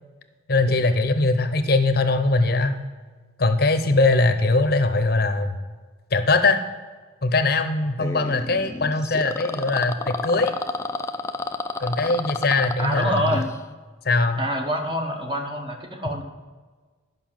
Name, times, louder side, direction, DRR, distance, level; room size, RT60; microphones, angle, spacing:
voice 1, 0.5-2.8 3.4-5.5 6.1-6.6 7.2-10.5 11.8-13.4 14.0-14.4, left 3 dB, 50° left, 9 dB, 0.8 m, -21 dB
sound 1, 8.0-13.6, left 3 dB, 15° left, 0.4 m, -31 dB
voice 2, 12.8-13.5 14.4-16.2, equal, 25° right, 3 dB, 1.3 m, -26 dB
11.5 x 5.5 x 7.4 m, 1.4 s
head